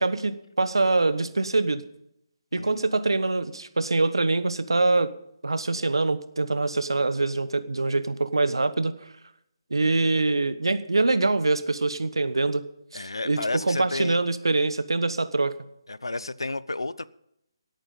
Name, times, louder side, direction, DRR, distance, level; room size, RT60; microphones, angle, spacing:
voice 1, 0.0-1.8 2.5-5.1 5.4-8.9 9.7-12.6 12.9-15.5, right 3 dB, 80° right, 13 dB, 1.2 m, -24 dB
voice 2, 2.5-2.8 12.9-14.2 15.9-17.1, left 2 dB, 80° left, 19 dB, 0.7 m, -32 dB
17.5 x 9.0 x 5.5 m, 0.78 s
figure-of-eight pair, 150°, 2 cm